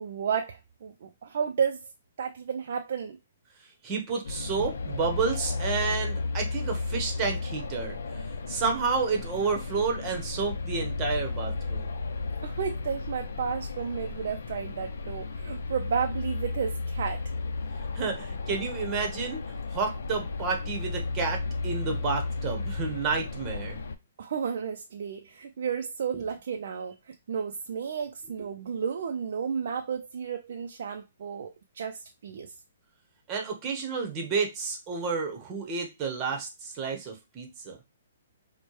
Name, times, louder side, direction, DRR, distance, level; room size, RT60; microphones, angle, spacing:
voice 1, 0.0-1.8 2.2-3.2 12.4-17.2 24.2-32.5, right 7 dB, 60° right, 0.4 m, -32 dB
voice 2, 3.8-8.0 8.5-11.9 17.9-19.4 19.7-23.8 33.3-37.8, right 5 dB, 25° right, 1.0 m, -30 dB
sound 1, 4.2-24.0, left 3 dB, 75° left, 0.5 m, -34 dB
4.3 x 2.2 x 3.1 m
hypercardioid pair, 145°, 0 cm